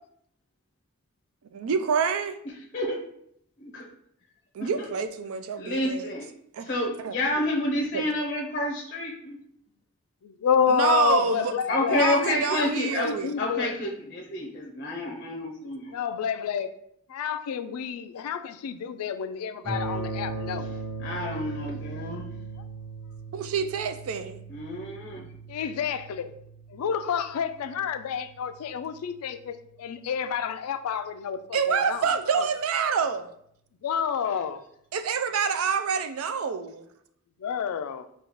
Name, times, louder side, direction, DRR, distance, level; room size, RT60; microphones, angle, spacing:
voice 1, 1.5-2.4 4.5-6.2 6.5-6.7 7.0-7.1 7.9-8.0 10.7-11.5 11.9-13.4 23.3-24.4 31.5-33.3 34.9-36.8, right 6 dB, 70° right, 0.4 m, -27 dB
voice 2, 5.6-6.2 6.7-9.4 11.7-13.1 13.4-16.0 21.0-22.3 24.5-25.3, left 1 dB, 40° left, 0.6 m, -29 dB
voice 3, 10.2-12.0 12.5-13.7 15.9-16.8 17.1-20.7 25.5-26.3 26.7-32.0 32.3-32.4 33.8-34.6 37.4-38.1, left 7 dB, 85° left, 0.3 m, -29 dB
sound 1, 19.6-29.6, right 3 dB, 40° right, 1.4 m, -38 dB
5.0 x 2.3 x 3.0 m
head